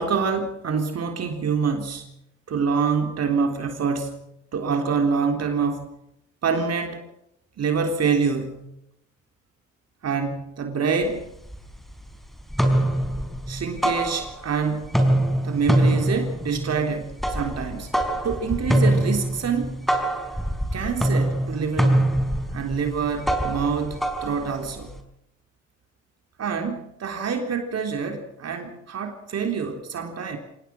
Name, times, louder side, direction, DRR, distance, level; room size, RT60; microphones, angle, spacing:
voice 1, 0.0-2.1 2.5-5.8 6.4-7.0 7.6-8.7 10.0-11.3 13.5-14.9 15.4-17.9 18.2-19.8 20.7-22.1 22.5-25.0 26.4-30.4, right 5 dB, 55° right, 5 dB, 3.7 m, -26 dB
sound 1, 11.0-11.1 11.5-12.1 12.4-14.6 14.8-25.0, right 1 dB, ahead, 4.7 m, -24 dB
26.5 x 18.0 x 6.3 m, 0.78 s
cardioid pair, 90°, 30 cm